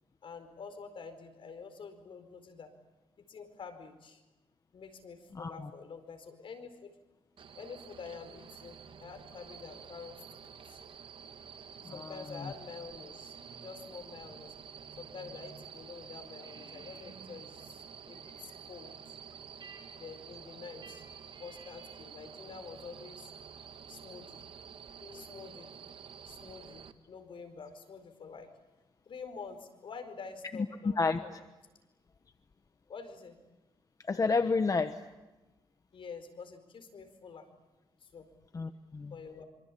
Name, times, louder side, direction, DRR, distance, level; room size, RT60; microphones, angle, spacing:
voice 1, 0.2-2.7 3.3-4.2 4.7-6.9 7.5-10.8 11.9-14.5 14.9-19.1 19.9-21.0 21.4-23.3 23.9-24.4 25.1-25.7 26.2-28.5 29.1-31.4 32.9-33.4 35.9-37.5 38.0-38.3 39.1-39.4, left 5 dB, 65° left, 9 dB, 4.5 m, -47 dB
sound 1, 7.4-26.9, right 7 dB, 65° right, 1.5 m, -50 dB
voice 2, 11.8-12.5 25.0-25.2 31.0-31.2 34.1-35.0 38.5-39.2, left 4 dB, 40° left, 9 dB, 1.2 m, -31 dB
sound 2, 13.2-15.7 16.0-22.2, right 4 dB, 50° right, 7.2 m, -58 dB
26.0 x 25.5 x 8.6 m, 1.1 s
cardioid pair, 90°, 9 cm